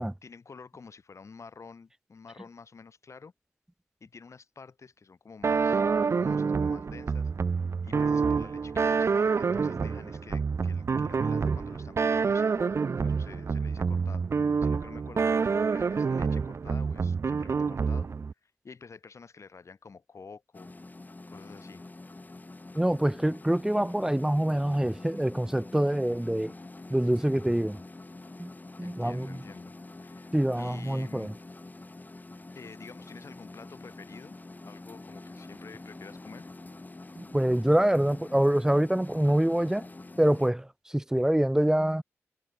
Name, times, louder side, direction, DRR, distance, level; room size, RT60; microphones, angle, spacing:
voice 1, 0.0-3.3 4.0-14.3 14.6-18.1 18.4-20.7 21.3-21.8 28.8-31.3 32.5-34.4 34.6-36.5, left 5 dB, 65° left, 6.6 m, -49 dB
sound 1, 5.4-18.3, right 5 dB, 55° right, 0.5 m, -27 dB
sound 2, 20.5-40.5, left 2 dB, 30° left, 6.8 m, -46 dB
voice 2, 22.7-26.5 26.9-27.8 28.4-28.5 28.8-29.4 30.3-31.3 37.2-39.8 40.2-40.7 40.9-42.0, right 1 dB, 10° right, 1.1 m, -25 dB
cardioid pair, 50°, 5 cm